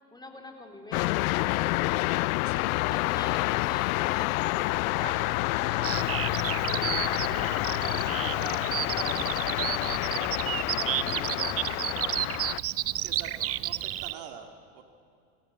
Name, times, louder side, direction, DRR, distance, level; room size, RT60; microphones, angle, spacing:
voice 1, 0.1-2.0 2.9-5.2 5.5-10.3 10.8-12.3, left 2 dB, 10° left, 4 dB, 3.5 m, -45 dB
sound 1, 0.9-12.6, left 22 dB, 65° left, 0.5 m, -28 dB
voice 2, 2.4-2.8 8.2-8.7 11.1-11.4 13.0-14.8, right 8 dB, 60° right, 5 dB, 2.6 m, -45 dB
Wind instrument woodwind instrument, 4.6-8.1, left 11 dB, 40° left, 2.9 m, -45 dB
Bird vocalization bird call bird song, 5.8-14.1, right 13 dB, 30° right, 0.8 m, -32 dB
28.5 x 17.5 x 8.2 m, 2.6 s
hypercardioid pair, 100°, 46 cm